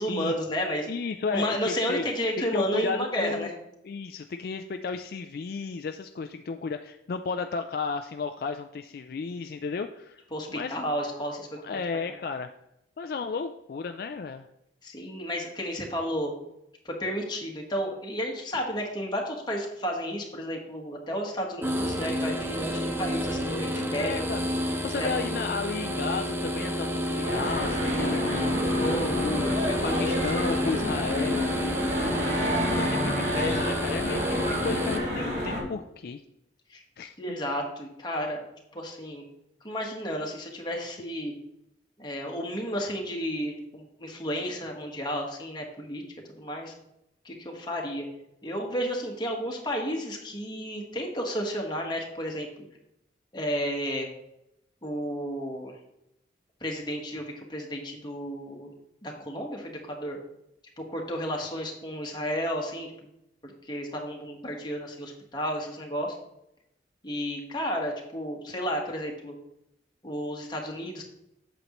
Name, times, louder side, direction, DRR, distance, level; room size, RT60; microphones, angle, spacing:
voice 1, 0.0-0.9 1.3-3.5 10.3-11.6 14.8-16.3 16.8-24.2 25.0-25.1 28.8-29.2 29.8-30.1 36.7-36.8 37.2-38.5 38.7-39.2 39.6-41.3 42.0-46.0 46.3-46.7 47.2-48.1 48.4-52.5 53.3-54.1 54.8-55.7 56.6-58.7 59.0-60.2 60.9-62.9 63.4-66.2 67.0-69.3 70.0-71.0, equal, 25° left, 0 dB, 1.4 m, -32 dB
voice 2, 0.9-2.1 2.5-3.5 3.8-10.2 10.5-10.8 11.0-11.2 11.6-12.5 13.0-14.5 23.7-24.5 24.8-29.6 29.8-31.5 32.0-36.2 37.0-37.4, left 5 dB, 55° left, 7 dB, 0.3 m, -33 dB
sound 1, 21.6-35.0, equal, 10° right, 0.6 m, -30 dB
sound 2, 27.2-35.6, equal, 45° right, 2.6 m, -29 dB
8.2 x 7.1 x 3.0 m, 0.83 s
head